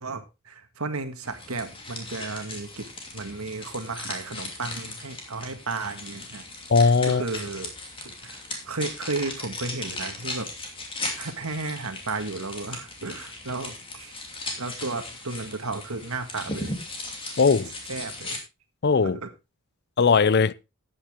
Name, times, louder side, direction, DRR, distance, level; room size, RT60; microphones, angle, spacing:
voice 1, 0.0-2.8 3.1-6.4 7.1-7.7 8.0-8.3 8.7-10.5 11.2-14.1 14.6-16.7 17.9-18.4 19.0-19.3, right 3 dB, 80° right, 1.7 m, -33 dB
sound 1, 1.2-18.4, left 2 dB, 25° left, 2.8 m, -37 dB
voice 2, 6.7-7.2 17.4-17.7 18.8-19.2 20.0-20.5, left 5 dB, 50° left, 0.5 m, -19 dB
13.5 x 8.8 x 3.5 m
head